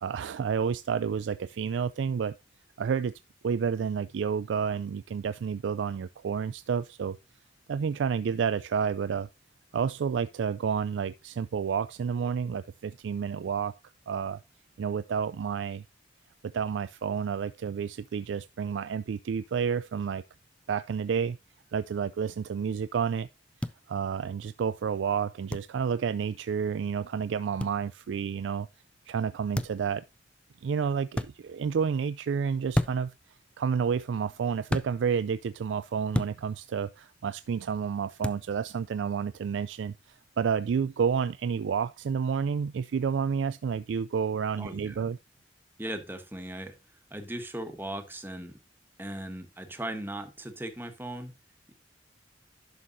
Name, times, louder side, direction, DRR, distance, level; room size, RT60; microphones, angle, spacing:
voice 1, 0.0-2.4 2.8-3.1 3.4-7.2 7.7-9.3 9.7-13.7 14.1-14.4 14.8-15.8 16.4-20.2 20.7-21.4 21.7-23.3 23.9-28.7 29.1-30.0 30.6-33.1 33.6-45.2, right 6 dB, 80° right, 0.3 m, -30 dB
sound 1, 23.6-23.8 25.5-25.7 27.6-27.8 29.5-29.9 31.1-31.3 32.7-33.1 34.7-34.9 36.1-36.4 38.2-38.4, left 1 dB, 5° left, 0.4 m, -29 dB
voice 2, 44.6-45.0 45.8-46.7 47.1-48.6 49.0-51.3, right 1 dB, 10° right, 1.3 m, -38 dB
11.5 x 6.5 x 2.6 m
head